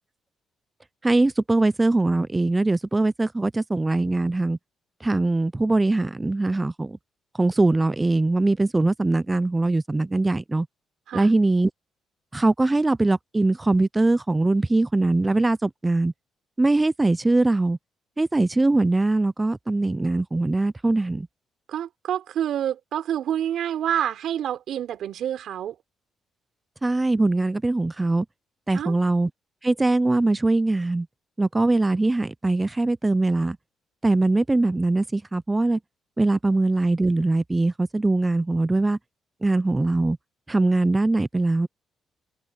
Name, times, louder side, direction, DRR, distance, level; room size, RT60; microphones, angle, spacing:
voice 1, 1.0-4.6 5.0-7.0 7.4-10.7 11.1-11.7 12.3-16.1 16.6-17.8 18.2-21.3 26.8-28.3 28.7-29.3 29.6-31.1 31.4-33.6 34.0-35.8 36.2-39.0 39.4-40.2 40.5-41.7, right 2 dB, 15° right, 0.6 m, -22 dB
voice 2, 21.7-25.8 28.7-29.0, right 10 dB, 70° right, 4.2 m, -27 dB
cardioid pair, 90°, 0 cm